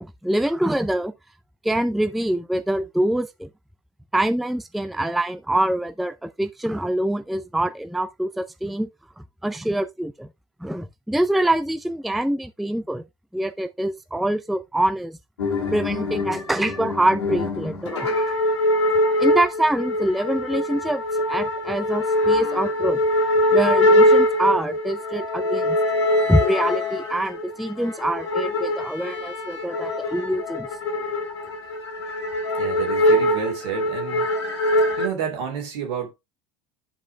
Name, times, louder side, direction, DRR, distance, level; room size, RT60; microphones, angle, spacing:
voice 1, 0.2-1.1 1.6-3.5 4.1-8.9 9.4-10.3 10.6-13.0 13.3-15.2 15.7-18.1 19.2-21.0 21.3-23.0 23.5-25.8 26.3-30.7, right 1 dB, ahead, 0.4 m, -24 dB
sound 1, 15.4-35.1, left 1 dB, 85° left, 1.9 m, -23 dB
voice 2, 32.6-34.3 35.0-36.1, right 7 dB, 70° right, 2.5 m, -29 dB
13.0 x 4.9 x 2.2 m
hypercardioid pair, 75°, 15 cm